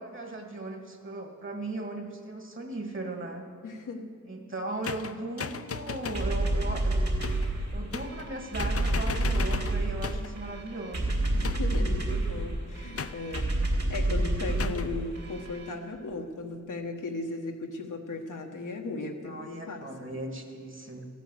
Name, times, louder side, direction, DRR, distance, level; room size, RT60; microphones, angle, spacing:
voice 1, 0.0-3.5 4.2-7.0 7.7-11.2 19.2-21.1, right 2 dB, 40° right, 3 dB, 2.1 m, -37 dB
voice 2, 3.6-4.1 11.3-20.1, left 3 dB, 80° left, 3 dB, 1.3 m, -37 dB
sound 1, 4.8-6.3 7.2-7.5 7.9-8.3 8.6-10.4 11.4-11.9 13.0-13.5 14.6-14.9, left 6 dB, 50° left, 0.6 m, -37 dB
sound 2, 6.1-15.7, right 1 dB, 55° right, 2.9 m, -29 dB
14.5 x 9.2 x 7.8 m, 2.3 s
cardioid pair, 55°, 31 cm